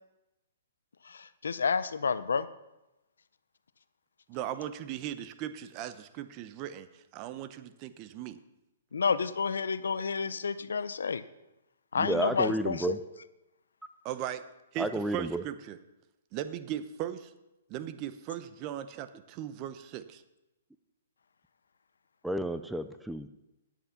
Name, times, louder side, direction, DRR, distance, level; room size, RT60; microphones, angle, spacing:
voice 1, 1.1-2.5 8.9-11.2 11.9-12.9, left 5 dB, 80° left, 15 dB, 0.6 m, -30 dB
voice 2, 4.3-6.9 7.1-8.4 14.0-14.4 14.7-15.8 16.3-17.3 17.7-20.2, right 11 dB, 35° right, 12 dB, 0.8 m, -38 dB
voice 3, 12.0-13.0 14.8-15.4 22.2-23.3, right 1 dB, 5° right, 10 dB, 0.5 m, -31 dB
10.5 x 7.8 x 5.8 m, 0.95 s
hypercardioid pair, 135°, 0 cm